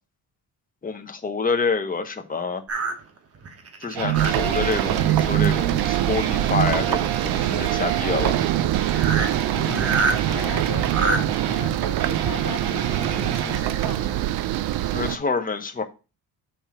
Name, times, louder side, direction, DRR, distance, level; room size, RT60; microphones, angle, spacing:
voice 1, 0.8-2.6 3.8-8.4 14.9-15.8, left 4 dB, 20° left, 0.9 m, -27 dB
sound 1, 2.7-5.2 5.7-6.0 6.3-8.0 8.5-8.6 8.8-11.2 12.2-13.8 14.4-14.5 14.8-14.9, right 3 dB, 40° right, 1.1 m, -29 dB
sound 2, 3.9-13.6, right 10 dB, 90° right, 1.0 m, -27 dB
sound 3, 4.1-15.2, right 14 dB, 70° right, 0.5 m, -25 dB
voice 2, 9.5-14.2, left 10 dB, 55° left, 0.8 m, -37 dB
5.8 x 3.6 x 5.8 m
cardioid pair, 115°, 38 cm